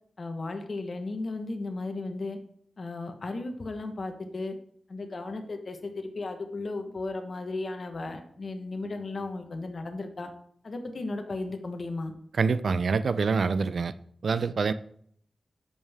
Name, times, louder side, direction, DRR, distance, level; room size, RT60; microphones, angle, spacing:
voice 1, 0.2-2.4 2.8-4.5 4.9-10.3 10.6-12.1, left 2 dB, 55° left, 1.2 m, -35 dB
voice 2, 12.3-13.9 14.2-14.7, right 5 dB, 70° right, 0.5 m, -26 dB
13.0 x 5.4 x 3.6 m
cardioid pair, 55°, 0 cm